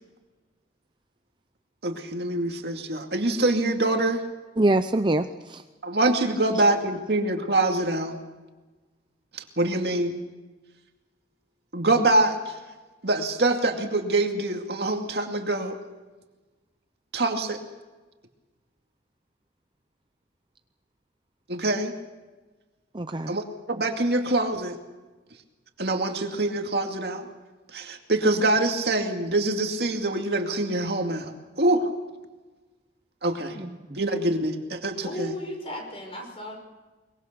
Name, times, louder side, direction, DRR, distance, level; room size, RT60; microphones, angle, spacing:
voice 1, 1.8-4.2 5.8-8.2 9.3-10.2 11.7-12.6 13.0-15.8 17.1-17.6 21.5-21.9 23.3-24.8 25.8-27.3 27.7-31.3 31.6-31.9 33.2-33.6 34.0-35.3, right 2 dB, 60° right, 2.4 m, -25 dB
voice 2, 4.6-5.6 6.5-6.6 22.9-23.4 33.6-34.0, right 2 dB, 25° right, 0.6 m, -25 dB
voice 3, 35.0-36.5, equal, 30° left, 5.8 m, -35 dB
23.0 x 22.5 x 6.8 m
head